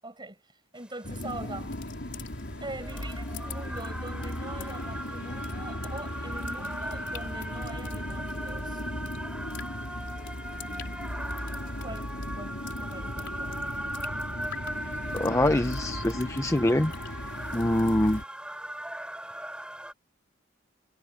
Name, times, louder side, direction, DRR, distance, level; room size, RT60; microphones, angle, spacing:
voice 1, 0.0-0.4 0.7-1.7 2.6-8.8 10.6-11.1 11.8-13.6, right 2 dB, 20° right, 7.2 m, -43 dB
sound 1, 0.9-19.9, right 1 dB, 5° right, 7.7 m, -39 dB
sound 2, 1.0-18.2, left 1 dB, 55° left, 4.6 m, -37 dB
voice 2, 15.1-16.9 17.5-18.2, left 1 dB, 15° left, 0.6 m, -24 dB
head